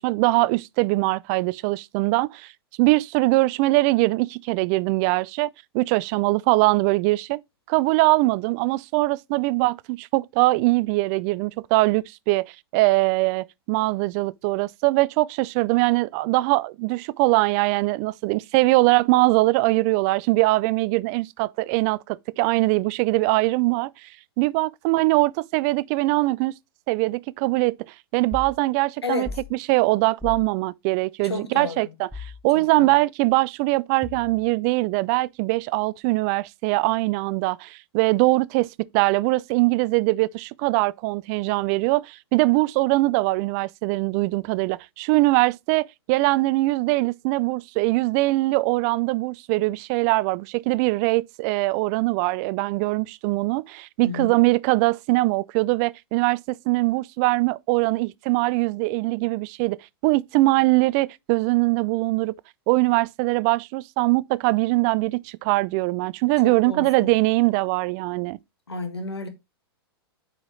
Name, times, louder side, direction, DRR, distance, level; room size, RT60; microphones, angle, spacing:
voice 1, 0.0-2.5 2.8-7.4 7.7-24.1 24.4-26.5 26.9-27.8 28.1-29.3 29.7-32.1 32.4-59.8 60.0-62.3 62.7-68.4, right 21 dB, 40° right, 0.3 m, -22 dB
sound 1, 28.3-28.6 29.2-29.5 30.2-30.5 32.1-32.4 34.0-34.5, left 3 dB, 5° right, 0.8 m, -36 dB
voice 2, 29.0-29.4 31.2-31.9 32.5-33.0 54.0-54.3 66.4-67.2 68.7-69.3, left 3 dB, 90° left, 1.7 m, -32 dB
8.7 x 5.0 x 3.1 m
hypercardioid pair, 105°, 13 cm